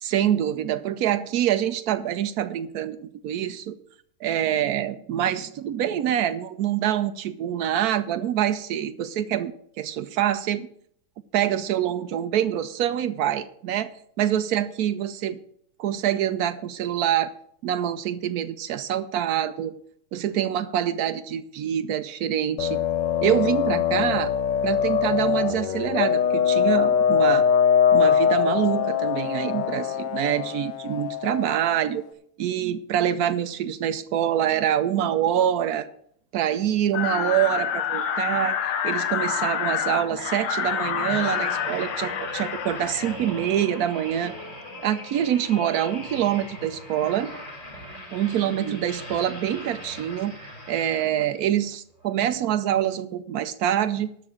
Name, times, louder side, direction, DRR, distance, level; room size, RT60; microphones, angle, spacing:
voice 1, 0.0-3.8 4.2-9.5 9.8-10.7 11.3-13.9 14.2-15.4 15.8-17.3 17.6-19.7 20.1-22.8 23.2-24.3 24.6-27.5 27.9-32.0 32.4-35.9 36.3-44.3 44.8-47.3 48.1-54.1, right 10 dB, 85° right, 11 dB, 0.8 m, -25 dB
sound 1, 22.6-31.8, left 8 dB, 65° left, 1.3 m, -22 dB
scream conv bit crushed, 36.9-43.1, left 9 dB, 80° left, 1.7 m, -28 dB
sound 2, 37.9-51.4 52.0-52.2, left 1 dB, 35° left, 4.4 m, -40 dB
13.0 x 4.8 x 8.8 m, 0.66 s
omnidirectional pair, 2.3 m